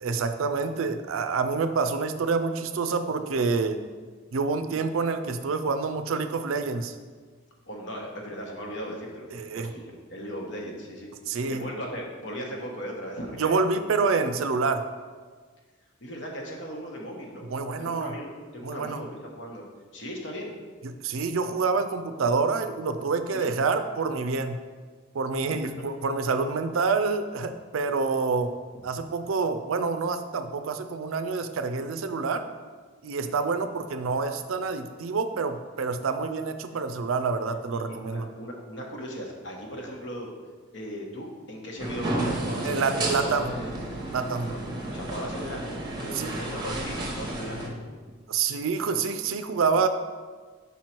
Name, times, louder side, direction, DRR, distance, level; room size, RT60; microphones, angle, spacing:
voice 1, 0.0-3.8 4.3-6.9 9.3-9.7 11.3-11.6 13.4-14.9 17.5-18.1 18.6-19.0 21.0-24.6 25.1-28.5 28.8-32.4 33.0-38.3 42.6-43.5 44.1-44.5 46.1-46.3 48.3-49.9, right 4 dB, 85° right, 9 dB, 0.4 m, -27 dB
voice 2, 7.7-11.1 11.5-13.5 16.0-17.5 17.8-19.6 19.9-20.5 23.3-23.5 28.7-28.8 33.2-33.3 37.7-40.3 40.7-43.8 44.5-44.6 44.9-45.7 46.0-47.6, equal, 60° left, 0 dB, 1.1 m, -37 dB
sound 1, 41.8-47.7, right 1 dB, 20° right, 0.8 m, -32 dB
5.5 x 4.5 x 4.4 m, 1.5 s
head